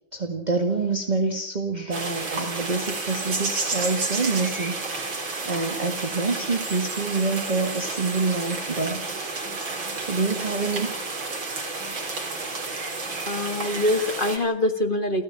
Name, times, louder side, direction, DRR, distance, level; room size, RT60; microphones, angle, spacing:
voice 1, 0.1-4.7 5.4-9.1 10.0-10.9, right 3 dB, 20° right, 6 dB, 1.7 m, -26 dB
sound 1, 1.9-14.4, right 3 dB, 65° right, 4.7 m, -31 dB
voice 2, 13.3-15.2, left 1 dB, 25° left, 9 dB, 1.6 m, -24 dB
29.5 x 15.0 x 8.7 m, 0.74 s
omnidirectional pair, 2.3 m